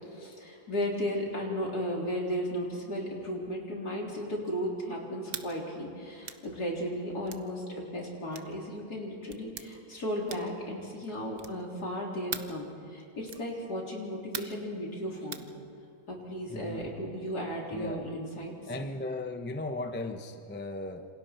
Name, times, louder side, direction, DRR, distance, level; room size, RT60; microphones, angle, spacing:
voice 1, 0.0-15.4 16.1-18.7, equal, 60° left, -2 dB, 4.3 m, -35 dB
sound 1, 5.3-5.5 6.2-6.5 7.3-7.5 8.3-8.6 9.3-9.7 10.3-10.6 11.4-11.7 12.3-12.6 13.3-13.5 14.3-14.6 15.3-15.5, right 6 dB, 40° right, 0.9 m, -40 dB
voice 2, 16.5-16.9 17.7-18.0 18.7-21.1, left 2 dB, 10° left, 5 dB, 0.8 m, -37 dB
28.0 x 26.5 x 4.6 m, 2.5 s
omnidirectional pair, 1.9 m